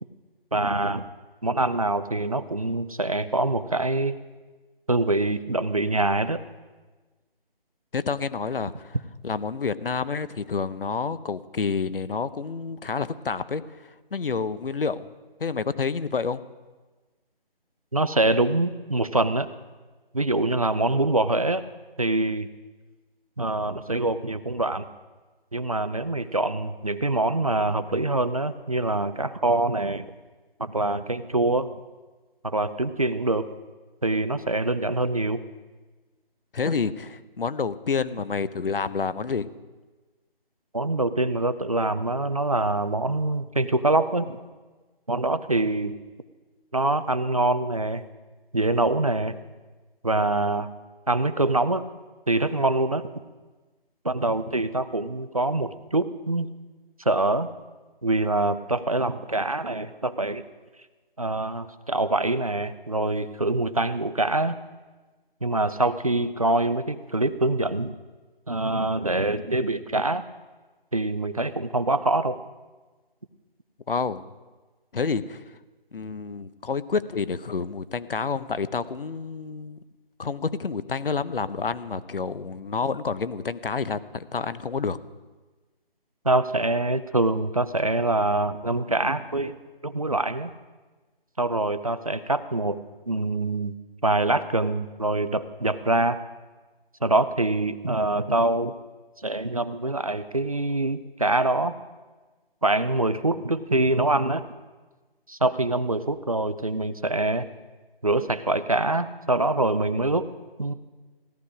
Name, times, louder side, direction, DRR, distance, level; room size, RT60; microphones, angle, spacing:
voice 1, 0.5-1.0 1.4-4.2 4.9-6.4 17.9-19.5 20.1-21.6 22.0-22.5 23.4-24.9 25.5-30.1 30.6-31.8 32.4-33.5 34.0-35.4 40.7-44.4 45.1-45.9 46.7-48.0 48.5-49.4 50.0-50.7 51.1-51.8 52.3-53.1 54.0-56.5 57.1-57.5 58.0-60.4 61.2-64.6 65.4-67.9 68.5-70.2 70.9-72.4 86.2-89.5 89.8-90.5 91.4-92.8 93.1-93.7 94.0-96.2 97.0-98.7 99.2-101.7 102.6-104.4 105.3-107.5 108.0-110.3 110.6-110.7, right 2 dB, 40° right, 12 dB, 0.5 m, -24 dB
voice 2, 7.9-9.0 9.2-13.6 14.1-15.1 15.4-16.4 36.5-39.5 73.9-74.3 74.9-75.4 75.9-79.8 80.2-85.0, left 5 dB, 65° left, 15 dB, 0.8 m, -29 dB
17.0 x 11.5 x 4.9 m, 1.3 s
figure-of-eight pair, 175°, 30 cm